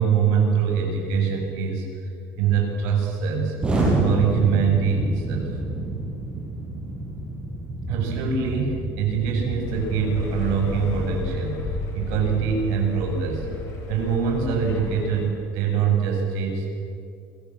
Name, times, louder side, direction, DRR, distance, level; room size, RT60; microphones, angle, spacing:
voice 1, 0.0-3.5 3.9-5.5 7.9-13.5 13.9-16.7, right 6 dB, 85° right, 1 dB, 7.5 m, -24 dB
Explosion, 3.6-13.5, right 2 dB, 15° right, 7.4 m, -29 dB
sound 1, 9.6-15.3, left 4 dB, 55° left, 7.0 m, -34 dB
28.5 x 23.0 x 7.8 m, 2.5 s
cardioid pair, 170°, 6 cm